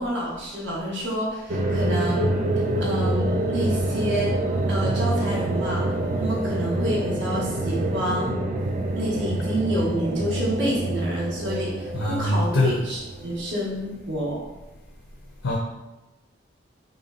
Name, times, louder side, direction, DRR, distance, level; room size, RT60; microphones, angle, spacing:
voice 1, 0.0-2.3 2.8-4.4 4.7-5.9 6.2-8.3 8.9-14.4, equal, 70° right, -5 dB, 1.1 m, -28 dB
sound 1, 1.5-13.6, right 1 dB, 40° right, 0.3 m, -26 dB
voice 2, 11.9-12.8 15.4-15.6, left 1 dB, 85° left, -2 dB, 0.5 m, -23 dB
3.5 x 2.1 x 3.6 m, 1.0 s
head